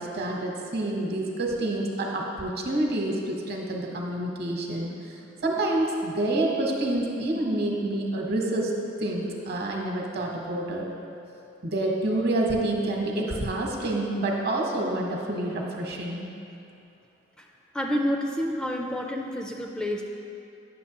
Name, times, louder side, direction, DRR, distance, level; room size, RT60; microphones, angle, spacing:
voice 1, 0.0-5.1 5.4-8.7 9.0-10.9 11.6-16.3, right 1 dB, 60° right, 0 dB, 1.0 m, -28 dB
voice 2, 17.7-20.0, equal, 5° left, 1 dB, 0.3 m, -28 dB
9.3 x 6.5 x 2.9 m, 2.7 s
head